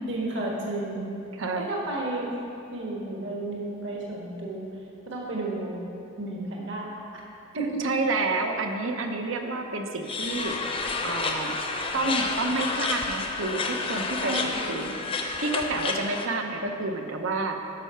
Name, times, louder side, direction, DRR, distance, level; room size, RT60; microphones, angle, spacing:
voice 1, 0.1-1.1 1.6-2.3 2.7-4.6 5.1-5.9 6.2-7.2 7.5-7.9 14.2-14.9, right 2 dB, 60° right, -3 dB, 1.5 m, -32 dB
voice 2, 1.4-1.7 7.8-10.6 11.0-11.5 11.9-14.9 15.4-17.6, right 3 dB, 80° right, 4 dB, 0.9 m, -29 dB
sound 1, 10.1-16.3, left 3 dB, 25° left, 0.6 m, -30 dB
12.0 x 5.5 x 5.7 m, 2.8 s
head